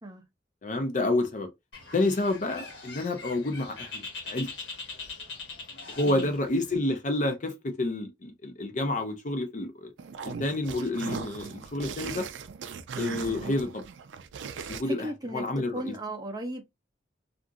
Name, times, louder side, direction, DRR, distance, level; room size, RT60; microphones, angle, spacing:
voice 1, 0.6-1.5 1.9-4.7 5.9-9.9 10.2-12.3 13.0-13.8 14.7-15.9, left 2 dB, 45° left, 0.6 m, -29 dB
Bird, 1.7-6.8, left 4 dB, 75° left, 1.2 m, -42 dB
sound 1, 10.0-14.8, right 6 dB, 90° right, 0.4 m, -38 dB
voice 2, 14.9-16.6, right 1 dB, 20° right, 0.6 m, -36 dB
2.5 x 2.4 x 2.7 m
head